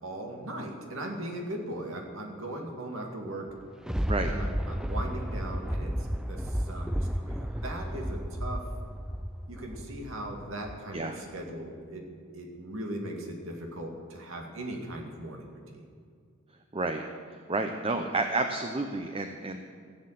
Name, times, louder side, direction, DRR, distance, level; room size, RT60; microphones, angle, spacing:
voice 1, 0.0-3.5 4.2-8.7 9.5-12.1 12.3-15.8, right 1 dB, 85° right, 1 dB, 2.3 m, -39 dB
Thunder, 3.4-11.0 11.5-11.6, equal, 5° right, 0.3 m, -33 dB
voice 2, 17.3-19.6, right 2 dB, 30° right, 5 dB, 0.7 m, -30 dB
15.5 x 7.8 x 7.6 m, 2.1 s
head